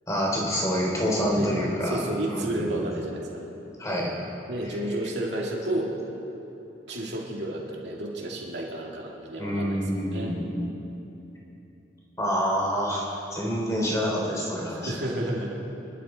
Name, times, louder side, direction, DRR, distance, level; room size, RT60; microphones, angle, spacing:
voice 1, 0.1-2.0 2.3-2.8 3.8-4.1 4.6-4.8 9.4-10.7 12.2-14.9, equal, 15° left, -3 dB, 3.2 m, -27 dB
voice 2, 1.8-3.4 4.5-6.0 6.9-9.8 10.1-10.3 14.7-15.5, right 1 dB, 60° right, -2 dB, 2.6 m, -31 dB
26.5 x 11.5 x 4.4 m, 3.0 s
head